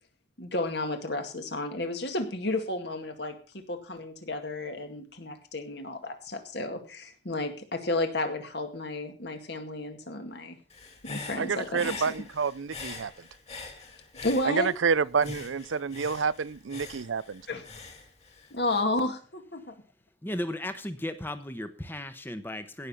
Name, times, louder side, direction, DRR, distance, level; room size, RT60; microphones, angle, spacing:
voice 1, 0.4-10.6 11.0-12.0 14.2-14.7 17.5-17.6 18.5-19.8, left 2 dB, 55° left, 2.1 m, -32 dB
Human voice / Breathing, 10.7-14.9 15.2-18.8, left 3 dB, 35° left, 2.9 m, -43 dB
voice 2, 11.4-13.1 14.5-17.4, right 5 dB, 80° right, 0.5 m, -28 dB
voice 3, 20.2-22.9, left 1 dB, 10° left, 1.0 m, -35 dB
17.0 x 6.7 x 5.7 m
head